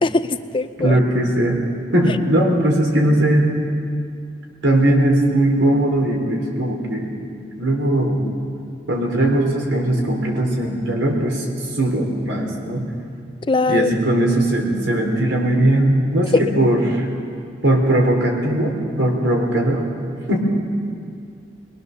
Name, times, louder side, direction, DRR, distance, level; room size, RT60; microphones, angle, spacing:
voice 1, 0.0-1.0 8.2-8.3 13.5-13.9 16.3-16.4, left 3 dB, 25° left, 11 dB, 0.6 m, -20 dB
voice 2, 0.8-1.6 1.9-3.5 4.6-7.2 7.6-8.3 8.9-11.5 11.8-12.9 13.7-17.1 17.6-19.8 20.3-20.4, right 1 dB, 80° right, 0 dB, 4.2 m, -19 dB
22.0 x 21.5 x 6.9 m, 2.3 s
head